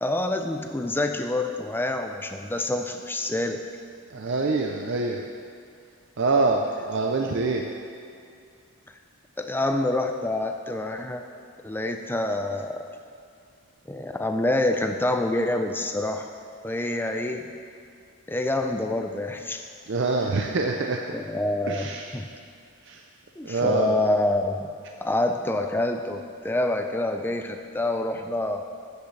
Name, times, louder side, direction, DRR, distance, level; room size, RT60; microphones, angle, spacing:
voice 1, 0.0-3.6 9.4-11.2 11.6-12.8 13.9-16.3 16.6-17.4 18.3-19.6 21.1-22.3 23.4-24.7 25.0-28.6, left 1 dB, 10° left, 5 dB, 0.4 m, -27 dB
voice 2, 4.1-5.3 6.2-7.7 19.9-21.1 21.7-22.2 22.8-23.0 23.4-24.0, right 3 dB, 55° right, 2 dB, 0.5 m, -25 dB
13.0 x 8.0 x 3.3 m, 2.4 s
head